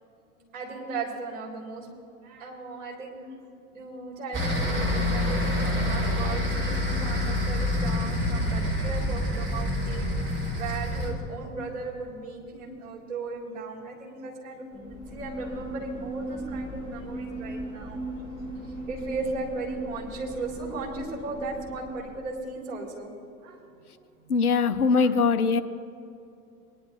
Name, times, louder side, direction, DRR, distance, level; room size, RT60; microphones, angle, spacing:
voice 1, 0.5-1.9 2.2-3.3 3.7-18.0 18.9-23.1 23.4-23.6 24.2-24.3 24.9-25.2, right 3 dB, 60° right, -4 dB, 3.7 m, -37 dB
sound 1, 4.3-11.1, left 1 dB, 25° right, 3.4 m, -27 dB
sound 2, 14.7-22.5, right 1 dB, 10° right, 2.4 m, -37 dB
voice 2, 24.3-25.6, left 5 dB, 80° left, 11 dB, 0.7 m, -22 dB
22.0 x 11.0 x 3.1 m, 2.7 s
figure-of-eight pair, 85°, 44 cm